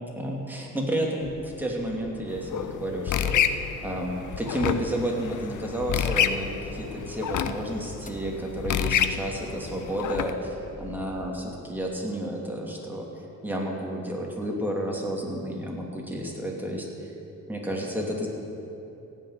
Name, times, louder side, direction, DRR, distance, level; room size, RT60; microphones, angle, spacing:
voice 1, 0.1-13.1 13.4-16.9 17.5-18.3, right 1 dB, 5° right, -2 dB, 2.7 m, -31 dB
sound 1, 1.2-9.2, left 4 dB, 25° left, 1.0 m, -46 dB
sound 2, 2.3-10.3, left 9 dB, 70° left, 0.7 m, -29 dB
sound 3, 5.9-11.1, left 1 dB, 45° left, 2.4 m, -48 dB
15.5 x 6.5 x 9.5 m, 3.0 s
cardioid pair, 95°, 31 cm